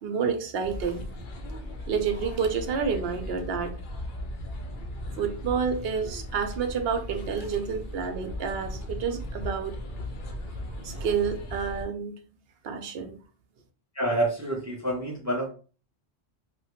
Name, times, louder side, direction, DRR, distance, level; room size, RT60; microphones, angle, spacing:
voice 1, 0.0-1.1 1.9-3.7 5.2-9.7 10.7-12.2 12.6-13.2, right 6 dB, 70° right, 6 dB, 0.8 m, -29 dB
sound 1, 0.6-11.8, left 1 dB, 55° left, 0.7 m, -37 dB
voice 2, 13.9-15.5, right 1 dB, 30° right, -1 dB, 0.3 m, -28 dB
2.9 x 2.2 x 2.8 m, 0.38 s
omnidirectional pair, 1.1 m